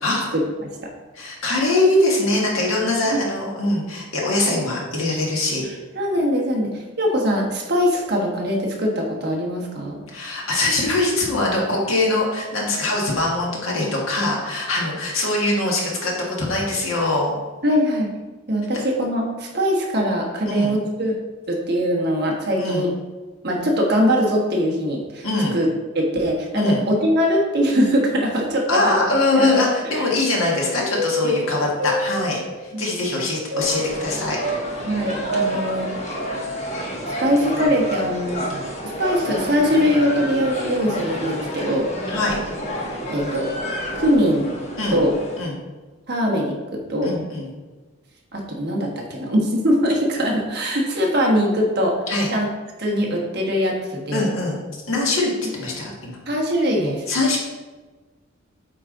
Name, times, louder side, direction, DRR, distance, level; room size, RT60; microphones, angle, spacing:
voice 1, 0.3-0.7 3.0-3.2 5.6-10.0 17.6-18.1 18.5-21.2 21.5-22.9 23.4-25.3 25.5-25.7 25.9-28.9 29.4-29.6 31.2-31.6 32.7-33.0 34.8-35.9 36.7-38.4 38.8-41.9 43.1-43.5 43.9-44.5 44.9-45.1 46.1-47.1 48.3-52.0 52.3-52.5 52.8-54.3 56.3-57.1, equal, 50° right, -1 dB, 1.3 m, -22 dB
voice 2, 1.2-5.7 10.1-17.3 20.5-20.7 22.6-22.8 25.2-25.6 26.6-26.8 28.7-34.4 42.1-42.4 44.8-45.0 45.4-45.5 47.0-47.5 52.1-52.3 54.1-54.6 54.9-56.2 57.1-57.4, left 2 dB, 85° left, -2 dB, 1.8 m, -22 dB
sound 1, 30.6-32.8 33.5-36.8 37.0-39.4 39.7-39.8 40.5-40.6 41.4-41.6 42.3-42.4 43.2-43.5, equal, 70° right, 1.9 m, -30 dB
sound 2, 33.6-45.4, equal, 35° left, 1.1 m, -30 dB
8.3 x 3.6 x 3.9 m, 1.3 s
head